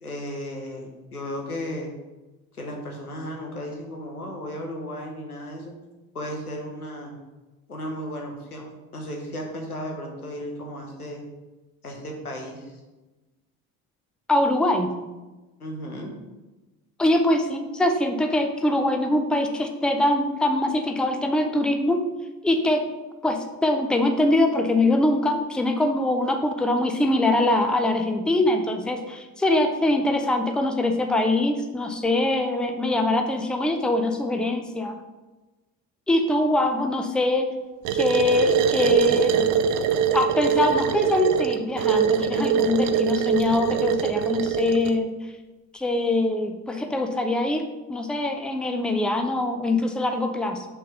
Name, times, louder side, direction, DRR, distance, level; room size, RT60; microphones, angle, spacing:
voice 1, 0.0-1.9 2.5-5.7 6.1-7.2 7.7-11.2 11.8-12.7 15.6-16.1, equal, 85° left, 1 dB, 1.0 m, -35 dB
voice 2, 14.3-14.9 17.0-22.1 22.4-22.8 23.2-35.0 36.1-37.5 37.9-39.5 40.1-45.2 45.7-47.6 47.9-50.7, left 1 dB, ahead, 5 dB, 0.6 m, -23 dB
sound 1, 37.9-45.0, right 8 dB, 45° right, 0.6 m, -23 dB
6.0 x 3.6 x 5.8 m, 1.1 s
figure-of-eight pair, 55°, 44 cm